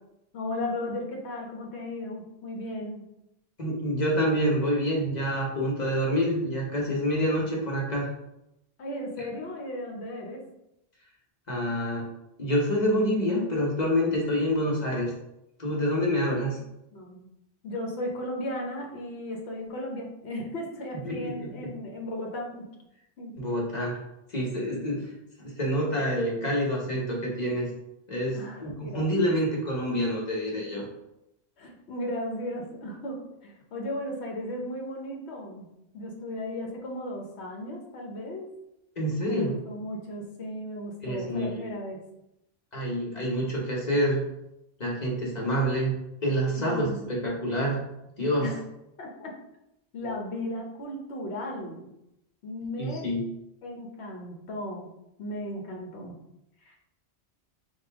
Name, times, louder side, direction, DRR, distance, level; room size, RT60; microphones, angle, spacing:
voice 1, 0.3-3.0 8.8-10.4 16.9-17.3 17.6-22.7 23.2-23.4 24.9-25.0 28.3-29.3 30.8-30.9 31.6-35.7 35.9-38.5 39.2-42.0 46.6-47.1 48.4-48.7 49.0-49.4 49.9-51.9 52.4-53.1 53.6-54.9 55.2-56.2 56.6-56.8, left 1 dB, 80° left, 0 dB, 1.1 m, -36 dB
voice 2, 3.6-8.1 11.5-12.1 12.4-15.1 15.6-16.6 21.0-21.7 23.4-24.0 24.3-25.1 25.4-27.7 28.1-30.8 39.0-39.5 41.0-41.7 42.7-44.2 44.8-45.9 46.2-47.8 48.2-48.5 52.8-53.2, equal, 40° left, -3 dB, 1.2 m, -27 dB
5.1 x 2.5 x 3.5 m, 0.85 s
omnidirectional pair, 1.1 m